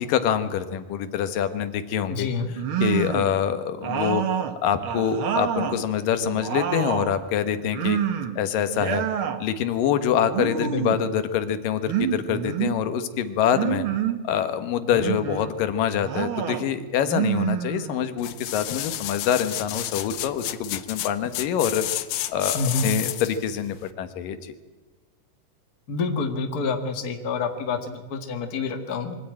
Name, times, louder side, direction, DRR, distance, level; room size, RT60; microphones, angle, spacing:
voice 1, 0.0-2.3 2.8-4.2 4.6-8.0 8.4-9.0 9.4-13.9 14.2-21.8 22.3-24.6, left 9 dB, 85° left, 10 dB, 2.9 m, -25 dB
voice 2, 2.0-2.6 10.6-10.8 22.5-22.9 25.9-29.2, left 4 dB, 35° left, 5 dB, 1.7 m, -28 dB
sound 1, 2.6-3.4 3.8-5.8 6.2-7.2 7.7-8.4 8.7-9.4 10.3-11.0 11.9-12.8 13.5-14.2 14.9-15.5 16.0-16.7 17.0-18.2, right 9 dB, 55° right, 1.5 m, -27 dB
sound 2, 18.2-23.4 23.9-24.0, left 13 dB, 70° left, 1.8 m, -31 dB
23.5 x 14.5 x 9.0 m, 1.3 s
omnidirectional pair, 3.8 m